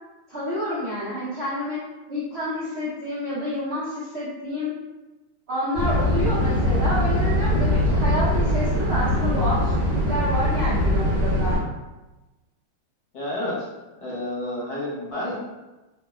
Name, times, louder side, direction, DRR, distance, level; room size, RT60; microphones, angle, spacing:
voice 1, 0.3-1.8 2.1-4.7 5.5-11.6, left 1 dB, 70° right, -11 dB, 0.6 m, -28 dB
sound 1, 5.7-11.6, left 1 dB, 55° right, 1.2 m, -22 dB
voice 2, 13.1-13.7 14.0-15.3, left 1 dB, 65° left, -6 dB, 1.4 m, -30 dB
3.4 x 2.1 x 2.3 m, 1.1 s
omnidirectional pair, 2.3 m